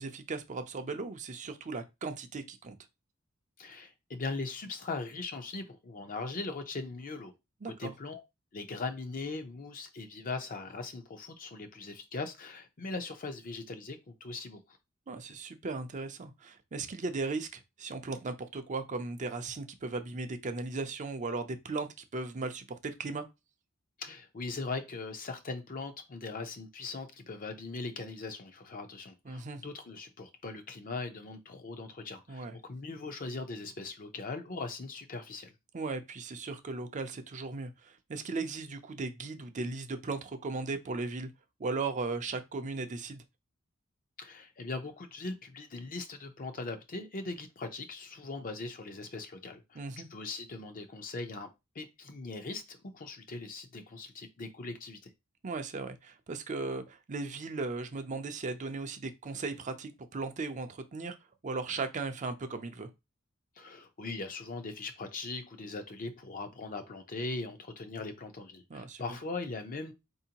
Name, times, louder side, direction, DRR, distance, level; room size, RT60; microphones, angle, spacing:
voice 1, 0.0-2.8 7.6-7.9 15.1-23.2 29.3-29.6 32.3-32.5 35.7-41.3 41.6-43.2 49.7-50.1 55.4-61.2 61.4-62.9 68.7-69.0, right 3 dB, 35° right, 0.5 m, -37 dB
voice 2, 3.6-7.3 7.6-8.2 8.5-14.6 24.0-35.5 44.2-49.8 50.1-51.5 51.7-55.0 63.6-69.9, left 3 dB, 40° left, 0.6 m, -40 dB
4.3 x 2.7 x 2.8 m
head